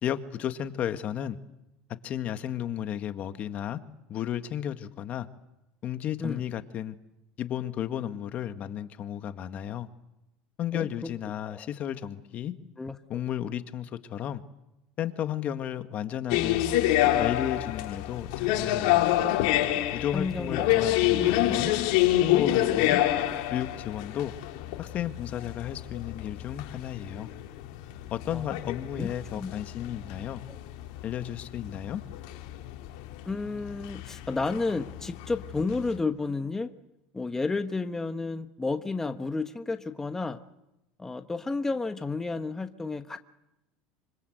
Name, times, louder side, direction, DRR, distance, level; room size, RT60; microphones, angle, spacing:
voice 1, 0.0-1.4 2.0-3.8 4.1-5.3 5.8-7.0 7.4-9.9 10.6-12.5 13.1-14.4 15.0-16.6 17.2-19.1 19.9-21.7 22.2-23.0 23.5-24.3 24.8-27.3 28.1-30.4 31.0-32.0, left 10 dB, 45° left, 10 dB, 1.7 m, -33 dB
sound 1, 16.3-36.0, left 14 dB, 75° left, 3.4 m, -28 dB
voice 2, 20.1-20.9 28.3-28.4 29.0-29.1 29.3-29.5 30.5-30.6 33.2-36.7 37.1-40.4 41.0-43.2, left 3 dB, 15° left, 8 dB, 1.3 m, -31 dB
25.5 x 25.5 x 8.0 m, 0.91 s
supercardioid pair, 105°, 3 cm